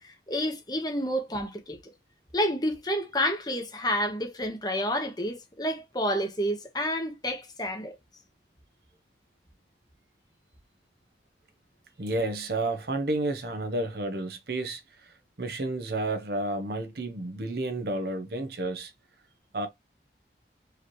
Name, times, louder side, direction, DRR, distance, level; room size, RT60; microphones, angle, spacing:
voice 1, 0.0-1.9 2.3-7.9, equal, 20° left, 1.1 m, -29 dB
voice 2, 12.0-18.9 19.5-19.7, right 2 dB, 60° right, 0.7 m, -31 dB
4.8 x 3.0 x 3.0 m
head